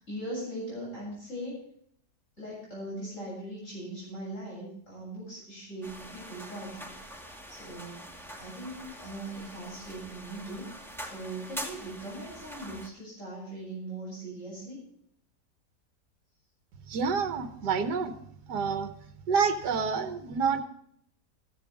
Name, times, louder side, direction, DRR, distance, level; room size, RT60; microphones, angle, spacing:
voice 1, 0.0-1.6 2.4-6.9 7.5-8.0 8.4-10.7 11.0-14.8, right 1 dB, 45° left, -6 dB, 8.1 m, -40 dB
sound 1, 5.8-12.9, right 1 dB, ahead, 2.0 m, -44 dB
voice 2, 16.9-18.1 18.5-18.9 19.3-20.6, right 6 dB, 75° right, 7 dB, 1.6 m, -28 dB
15.5 x 14.5 x 3.5 m, 0.68 s
omnidirectional pair, 1.8 m